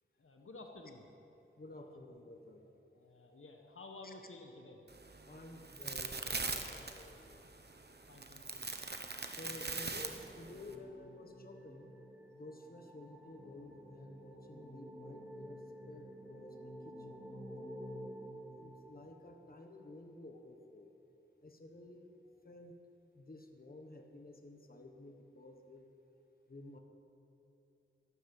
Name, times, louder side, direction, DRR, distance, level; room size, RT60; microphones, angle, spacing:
voice 1, 0.2-1.1 1.7-2.0 2.9-4.8 8.1-8.7 10.9-11.0, left 2 dB, 80° left, 3 dB, 1.2 m, -53 dB
voice 2, 1.6-2.7 4.0-4.1 5.2-7.4 9.3-11.9 12.3-17.7 18.5-20.9 21.4-22.2 22.4-22.7 23.1-25.9 26.5-26.8, left 2 dB, 45° left, 4 dB, 1.3 m, -53 dB
sound 1, 4.9-10.7, right 3 dB, 50° right, 1.1 m, -42 dB
sound 2, 9.0-19.5, equal, 10° right, 3.3 m, -51 dB
12.0 x 11.5 x 7.6 m, 2.9 s
wide cardioid pair, 70°, 21 cm